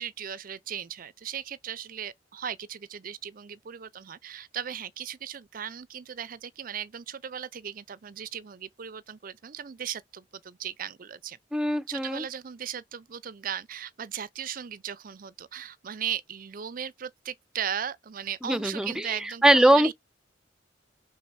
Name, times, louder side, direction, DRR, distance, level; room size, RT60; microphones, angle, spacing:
voice 1, 0.0-11.4 11.9-19.9, right 9 dB, 50° right, 0.5 m, -37 dB
voice 2, 11.5-12.2 18.4-19.9, right 1 dB, 5° right, 0.6 m, -22 dB
6.0 x 4.4 x 4.1 m
head